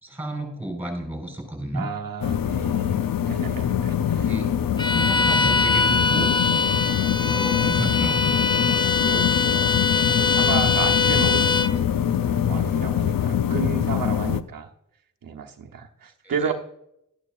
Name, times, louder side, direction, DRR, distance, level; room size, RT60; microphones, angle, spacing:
voice 1, 0.0-1.9 4.1-4.5 4.9-6.3 7.2-8.4 16.2-16.5, right 1 dB, 5° right, 3 dB, 4.6 m, -32 dB
voice 2, 1.7-3.0 3.2-4.3 4.7-5.0 9.0-9.5 10.1-11.8 12.2-14.7 15.2-16.5, right 6 dB, 80° right, 2 dB, 1.0 m, -32 dB
sound 1, 2.2-14.4, left 9 dB, 80° left, 0.6 m, -24 dB
Bowed string instrument, 4.8-11.8, left 4 dB, 15° left, 0.6 m, -22 dB
12.5 x 11.5 x 2.5 m, 0.77 s
wide cardioid pair, 90°, 33 cm